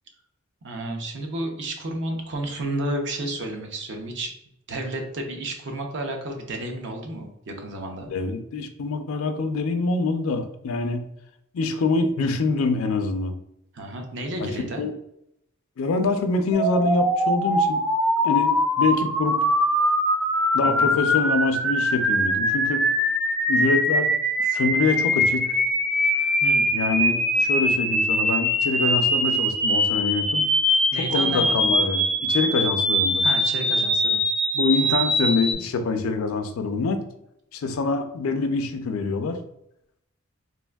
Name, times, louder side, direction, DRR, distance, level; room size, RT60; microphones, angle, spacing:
voice 1, 0.6-4.3 4.7-8.1 13.7-14.9 20.6-21.0 26.4-26.7 30.9-31.7 33.2-34.2, right 1 dB, 60° right, 3 dB, 0.6 m, -31 dB
voice 2, 8.1-11.1 11.5-13.4 14.4-14.5 14.8-14.9 15.8-17.8 18.2-19.4 20.5-22.9 23.5-24.1 24.4-25.6 26.7-30.5 31.0-33.2 34.5-37.1 37.5-39.4, left 3 dB, 70° left, 7 dB, 0.4 m, -25 dB
sound 1, 16.5-35.5, equal, ahead, 0.4 m, -22 dB
3.4 x 2.5 x 2.2 m, 0.79 s
head